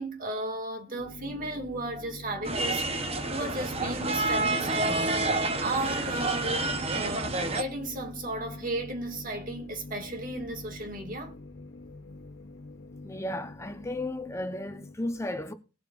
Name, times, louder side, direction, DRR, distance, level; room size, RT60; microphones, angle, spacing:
voice 1, 0.0-11.3, right 2 dB, 50° right, 2.1 m, -35 dB
sound 1, 1.0-15.0, left 2 dB, 80° left, 1.2 m, -45 dB
sound 2, 2.4-7.6, right 2 dB, 35° right, 1.0 m, -29 dB
voice 2, 13.0-15.5, left 1 dB, 15° left, 0.9 m, -34 dB
20.5 x 7.5 x 2.5 m
head